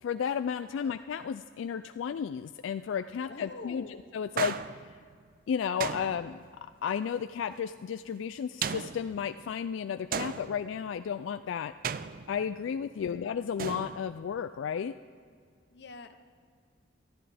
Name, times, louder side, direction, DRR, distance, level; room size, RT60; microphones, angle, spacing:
voice 1, 0.0-3.8 4.1-4.6 5.5-6.4 6.8-11.7 12.3-14.9, left 7 dB, 80° left, 10 dB, 0.3 m, -33 dB
voice 2, 3.2-4.0 13.0-13.3 15.7-16.2, left 3 dB, 60° left, 7 dB, 0.7 m, -46 dB
sound 1, 4.4-5.1 5.8-6.6 8.6-9.4 10.1-10.9 11.8-12.7 13.6-14.4, right 7 dB, 45° right, 0.4 m, -36 dB
19.0 x 13.0 x 3.4 m, 2.1 s
head